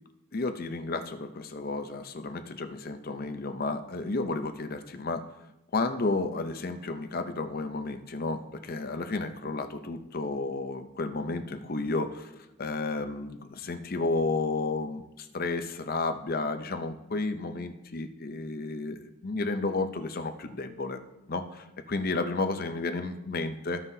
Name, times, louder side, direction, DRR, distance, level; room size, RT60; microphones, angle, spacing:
voice 1, 0.3-5.3 5.7-21.0 21.3-23.8, left 3 dB, 45° left, 8 dB, 0.6 m, -32 dB
14.5 x 5.6 x 2.7 m, 0.93 s
head